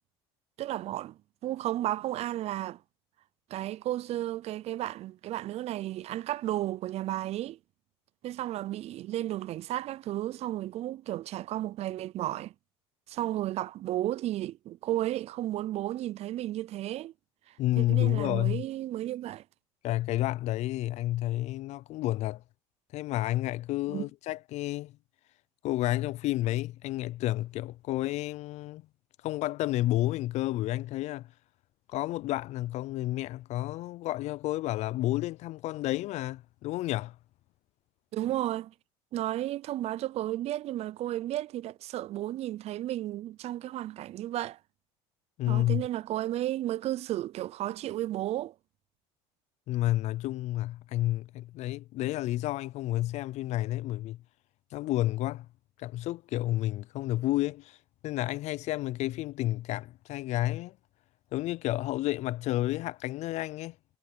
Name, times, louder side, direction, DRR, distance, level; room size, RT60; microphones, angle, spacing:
voice 1, 0.6-2.8 3.5-7.6 8.2-12.5 13.1-17.1 17.8-19.4 23.9-24.1 38.1-38.7 39.1-44.6 45.5-48.5, right 14 dB, 55° right, 0.5 m, -33 dB
voice 2, 17.6-18.6 19.8-22.4 22.9-25.0 25.6-28.8 29.2-31.3 31.9-37.2 45.4-45.9 49.7-54.2 54.7-55.5 55.8-57.8 58.0-60.8 61.3-63.8, left 16 dB, 60° left, 0.5 m, -30 dB
supercardioid pair, 80°, 13 cm